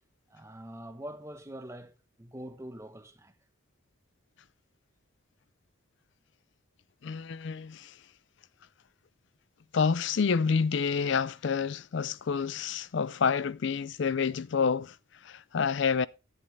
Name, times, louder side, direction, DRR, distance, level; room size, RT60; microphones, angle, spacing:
voice 1, 0.3-3.4, right 1 dB, 15° right, 0.9 m, -44 dB
voice 2, 7.0-7.9 9.7-14.9 15.2-16.1, left 5 dB, 55° left, 0.4 m, -28 dB
10.5 x 10.0 x 3.3 m
head